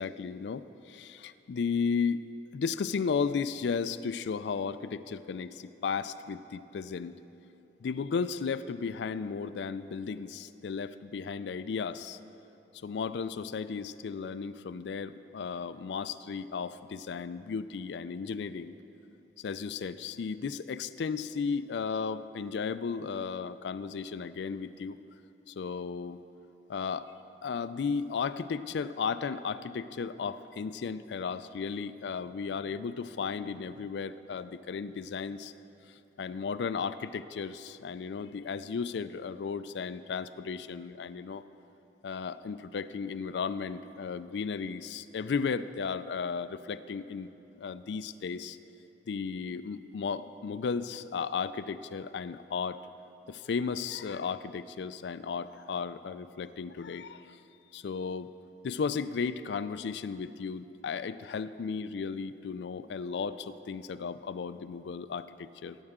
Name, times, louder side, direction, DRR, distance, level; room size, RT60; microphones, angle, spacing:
voice 1, 0.0-2.3 2.5-7.2 7.8-12.2 12.8-18.8 19.4-25.0 25.5-26.2 26.7-27.1 27.4-35.5 35.9-41.4 42.0-47.3 47.6-48.6 49.1-52.8 53.3-57.4 57.7-58.3 58.6-65.8, left 5 dB, 70° left, 14 dB, 0.4 m, -34 dB
19.0 x 8.7 x 3.6 m, 2.9 s
head